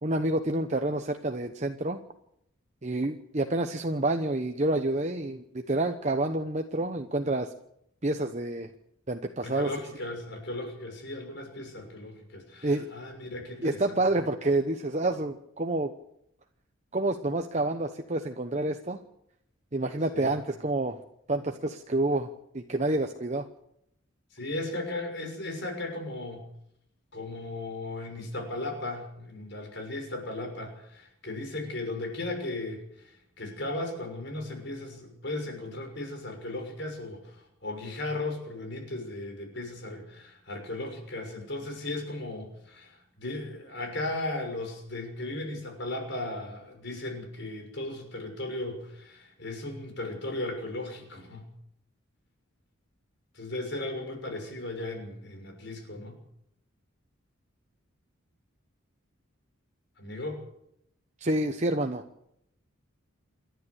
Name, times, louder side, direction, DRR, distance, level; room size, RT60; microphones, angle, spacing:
voice 1, 0.0-2.0 2.8-7.5 8.0-8.7 9.1-9.7 12.6-12.9 13.6-15.9 16.9-19.0 19.7-21.0 21.3-23.4 61.2-62.0, right 2 dB, 35° right, 6 dB, 1.0 m, -28 dB
voice 2, 9.4-14.0 20.1-20.4 24.3-26.5 27.1-51.5 53.3-56.2 60.0-60.4, left 2 dB, 55° left, 4 dB, 6.3 m, -36 dB
28.0 x 11.5 x 8.2 m, 0.76 s
head